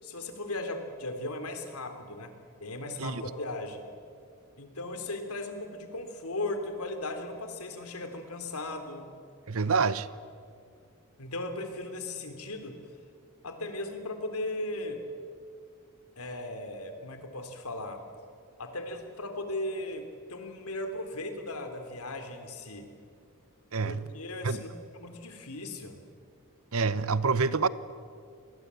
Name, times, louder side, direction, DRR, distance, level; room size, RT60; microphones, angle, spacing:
voice 1, 0.0-2.3 2.6-3.8 4.6-9.1 11.2-12.8 13.4-15.0 16.2-18.0 18.6-22.9 23.8-24.7 25.0-26.0, left 2 dB, 85° left, 3.4 m, -37 dB
voice 2, 9.5-10.1 23.7-24.0 24.4-24.6 26.7-27.7, right 4 dB, 70° right, 0.9 m, -27 dB
27.5 x 20.5 x 8.4 m
head